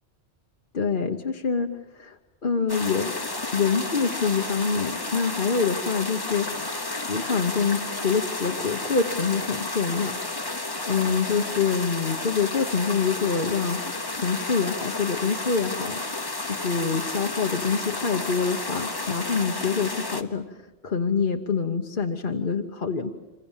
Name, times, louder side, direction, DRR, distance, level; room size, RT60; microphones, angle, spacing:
voice 1, 0.7-3.2 3.5-10.2 10.9-16.0 16.5-20.6 20.8-23.1, left 5 dB, 50° left, 3 dB, 1.2 m, -26 dB
sound 1, 2.7-20.2, left 2 dB, 20° left, 1.1 m, -32 dB
27.0 x 26.5 x 7.3 m, 1.1 s
omnidirectional pair, 1.1 m